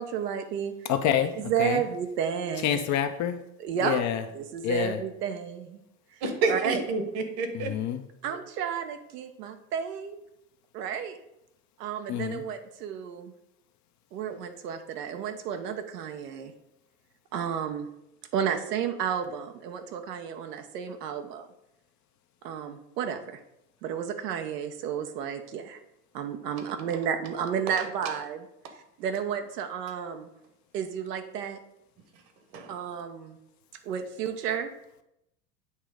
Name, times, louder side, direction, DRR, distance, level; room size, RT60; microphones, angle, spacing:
voice 1, 0.0-0.7 1.3-2.9 3.6-4.0 4.3-5.8 6.5-6.8 8.2-10.2 10.7-11.2 11.8-13.3 14.1-16.5 17.3-17.9 18.3-21.5 22.4-23.4 23.8-25.8 26.1-28.5 29.0-30.3 30.7-31.6 32.7-33.4 33.8-34.7, right 7 dB, 75° right, 0.9 m, -32 dB
voice 2, 0.9-1.8 2.6-3.4 3.8-4.2 4.6-5.0 7.5-8.0 12.1-12.4, left 9 dB, 40° left, 0.6 m, -27 dB
voice 3, 6.2-7.7 32.5-32.7, right 3 dB, 50° right, 1.3 m, -28 dB
8.2 x 2.9 x 4.9 m
hypercardioid pair, 85°, 48 cm